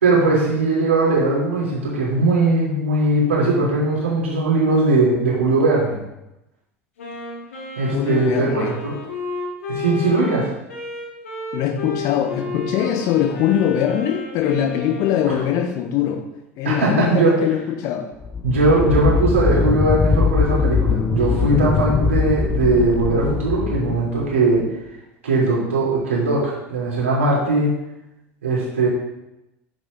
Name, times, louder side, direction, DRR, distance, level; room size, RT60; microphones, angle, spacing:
voice 1, 0.0-6.0 7.7-8.9 9.7-10.5 16.6-17.4 18.4-24.7 25.2-27.7 28.4-28.9, right 2 dB, 75° right, -5 dB, 3.2 m, -19 dB
Wind instrument woodwind instrument, 7.0-15.6, left 3 dB, 70° left, 2.2 m, -32 dB
voice 2, 7.9-8.7 11.5-16.2 16.6-18.1, left 9 dB, 50° left, 4 dB, 1.3 m, -22 dB
sound 1, 18.2-24.6, left 5 dB, 20° left, 0.6 m, -21 dB
10.5 x 7.5 x 2.7 m, 0.93 s
figure-of-eight pair, 75°, 7 cm